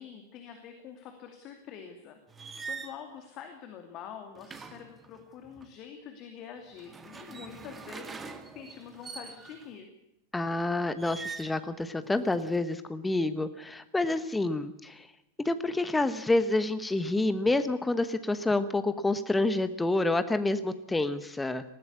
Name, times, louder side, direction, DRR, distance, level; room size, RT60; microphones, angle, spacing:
voice 1, 0.0-8.2 8.5-9.9, left 8 dB, 35° left, 5 dB, 2.5 m, -46 dB
sound 1, 2.3-3.0 4.3-5.7 6.7-9.7 11.0-11.6 12.0-12.6, right 5 dB, 15° right, 1.8 m, -43 dB
voice 2, 10.3-15.1 15.4-21.6, left 2 dB, 10° left, 11 dB, 1.1 m, -28 dB
20.0 x 15.5 x 8.5 m, 0.87 s
figure-of-eight pair, 90°, 0 cm